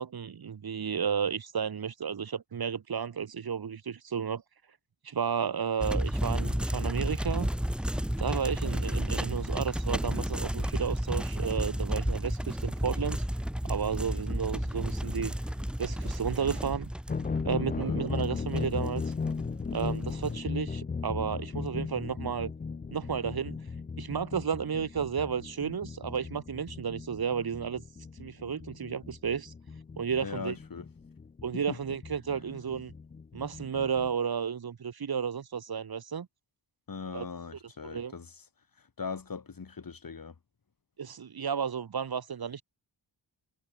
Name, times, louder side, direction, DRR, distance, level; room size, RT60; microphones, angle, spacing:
voice 1, 0.0-4.4 5.0-7.5 8.2-13.2 13.6-15.3 15.8-16.9 17.4-19.0 19.7-22.5 22.9-23.6 24.0-27.8 28.2-29.5 30.0-30.5 31.4-32.9 33.3-36.3 37.1-37.2 37.8-38.1 41.0-42.6, right 7 dB, 55° right, 1.4 m, -32 dB
sound 1, 5.8-20.4, equal, ahead, 1.2 m, -32 dB
sound 2, 17.1-34.1, left 5 dB, 20° left, 0.4 m, -37 dB
voice 2, 17.5-18.0 30.2-30.9 31.5-31.8 36.9-38.4 38.8-40.3, left 5 dB, 50° left, 4.3 m, -40 dB
wide cardioid pair, 145°, 45 cm